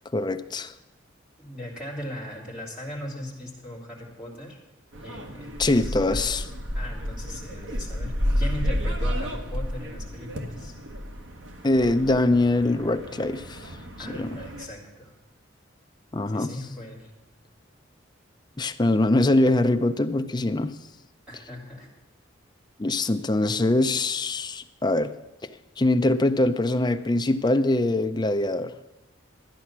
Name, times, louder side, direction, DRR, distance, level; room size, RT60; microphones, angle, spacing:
voice 1, 0.1-0.7 5.6-6.4 11.6-13.8 14.1-14.4 16.1-16.5 18.6-20.8 22.8-25.1 25.4-25.5 25.8-28.7, left 2 dB, 20° left, 8 dB, 0.5 m, -23 dB
voice 2, 1.4-4.6 5.0-6.2 6.7-10.7 14.0-15.2 16.3-17.1 21.3-21.9, left 1 dB, 5° right, -6 dB, 3.0 m, -39 dB
sound 1, 4.9-14.7, equal, 70° right, 1.3 m, -31 dB
13.0 x 9.7 x 5.9 m, 1.0 s
head